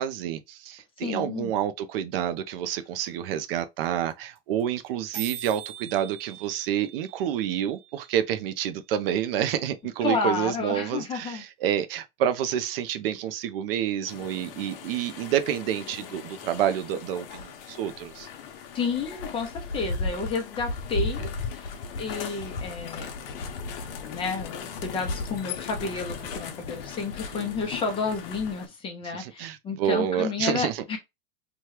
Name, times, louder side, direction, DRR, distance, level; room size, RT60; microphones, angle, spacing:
voice 1, 0.0-18.3 27.3-27.5 29.1-30.8, right 10 dB, 65° right, 0.6 m, -28 dB
voice 2, 1.0-1.6 10.0-11.4 18.7-23.4 24.0-31.0, left 4 dB, 15° left, 0.6 m, -31 dB
sound 1, 3.1-3.2 3.3-3.4 3.6-3.8 4.1-4.2 4.4-4.6 4.9-5.0 5.1-9.1, right 9 dB, 20° right, 1.0 m, -42 dB
sound 2, 14.1-28.7, left 4 dB, 60° left, 0.8 m, -36 dB
2.9 x 2.3 x 3.1 m
supercardioid pair, 155°, 31 cm